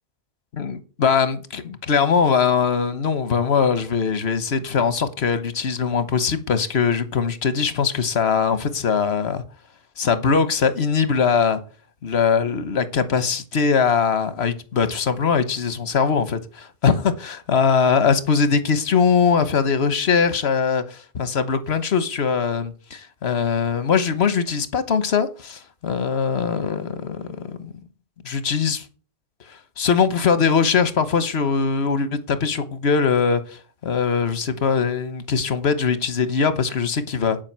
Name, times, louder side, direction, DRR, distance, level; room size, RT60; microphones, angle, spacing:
voice 1, 0.5-9.4 10.0-11.6 12.0-27.7 28.2-28.8 29.5-37.4, left 6 dB, 80° left, 1.3 m, -21 dB
10.5 x 5.1 x 7.4 m
omnidirectional pair, 1.1 m